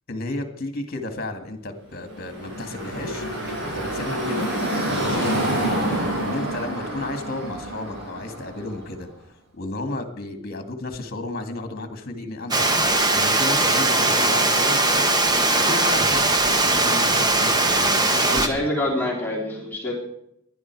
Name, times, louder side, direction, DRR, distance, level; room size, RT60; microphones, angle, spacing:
voice 1, 0.1-3.2 3.7-4.5 4.9-9.1 9.5-15.1 15.5-16.3 16.6-18.6, left 2 dB, 45° left, 7 dB, 2.1 m, -33 dB
Car passing by / Traffic noise roadway noise, 2.0-9.0, right 1 dB, 50° right, 7.6 m, -27 dB
Water, 12.5-18.5, right 2 dB, 20° right, 1.2 m, -20 dB
voice 2, 18.2-19.9, left 1 dB, 10° left, -3 dB, 3.7 m, -26 dB
19.5 x 11.5 x 4.7 m, 0.78 s
head